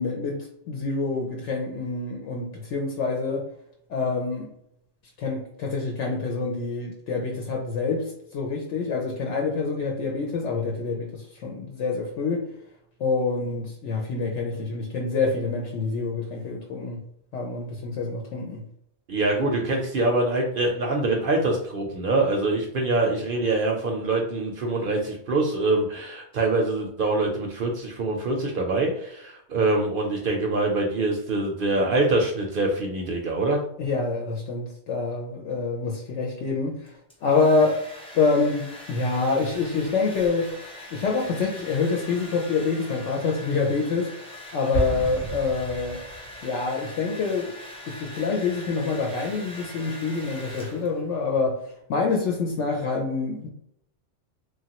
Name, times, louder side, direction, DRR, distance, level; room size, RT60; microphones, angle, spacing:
voice 1, 0.0-3.5 3.9-4.5 5.2-12.4 13.0-17.0 17.3-18.6 33.8-37.8 38.1-40.5 40.9-44.1 44.5-46.0 46.4-47.5 47.9-51.6 51.9-53.5, left 4 dB, 75° left, 0 dB, 0.9 m, -26 dB
voice 2, 19.1-33.6, right 2 dB, 60° right, 1 dB, 0.6 m, -24 dB
Domestic sounds home sounds, 36.9-51.1, left 1 dB, 10° left, 0.4 m, -42 dB
Explosion, 44.7-46.6, right 2 dB, 45° left, 0.9 m, -31 dB
3.1 x 2.3 x 2.8 m, 0.72 s
omnidirectional pair, 1.3 m